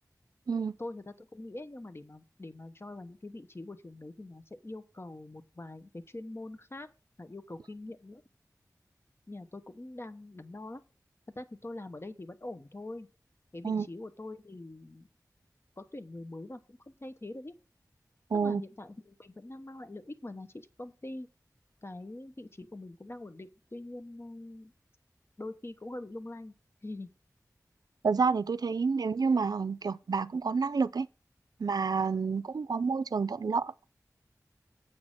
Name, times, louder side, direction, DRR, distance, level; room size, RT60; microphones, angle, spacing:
voice 1, 0.8-6.9 7.2-8.2 9.3-10.8 11.3-13.1 13.5-15.1 15.8-17.5 18.3-21.3 21.8-24.7 25.4-26.5 26.8-27.1, left 2 dB, 40° left, 1.0 m, -44 dB
voice 2, 18.3-18.6 28.0-31.1 31.6-33.9, right 5 dB, 80° right, 0.4 m, -29 dB
7.7 x 6.4 x 6.0 m
wide cardioid pair, 50°, 7 cm